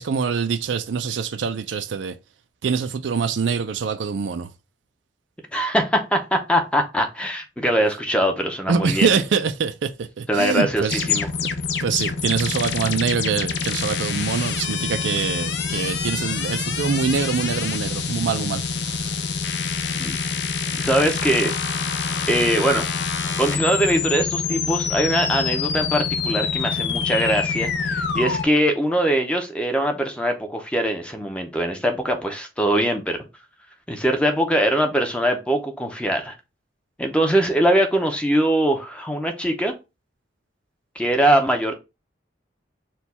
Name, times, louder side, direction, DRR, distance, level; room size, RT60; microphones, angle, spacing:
voice 1, 0.0-2.2 2.6-4.5 8.7-11.1 11.8-19.1, right 6 dB, 80° right, 0.4 m, -24 dB
voice 2, 5.5-9.1 10.3-11.3 20.0-20.2 20.8-21.5 22.3-22.9 23.4-33.2 33.9-36.3 37.0-39.7 41.0-41.7, right 1 dB, 5° left, 0.6 m, -22 dB
sound 1, 10.9-28.4, left 5 dB, 65° left, 0.6 m, -26 dB
4.4 x 2.3 x 4.1 m
head